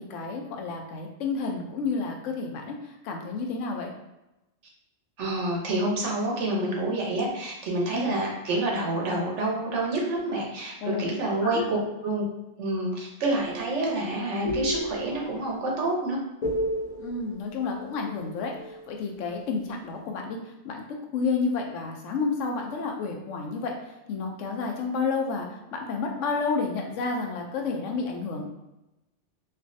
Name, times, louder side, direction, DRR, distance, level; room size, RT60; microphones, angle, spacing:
voice 1, 0.0-3.9 7.9-8.1 10.8-11.0 11.4-11.7 17.0-20.8 21.1-23.7 24.1-28.5, left 4 dB, 85° left, 2 dB, 0.9 m, -30 dB
voice 2, 5.2-11.8 12.0-12.2 12.6-16.2, right 2 dB, 75° right, -2 dB, 1.1 m, -28 dB
sound 1, 13.4-19.0, equal, 45° left, 0.5 m, -34 dB
3.3 x 2.3 x 2.5 m, 0.93 s
omnidirectional pair, 1.2 m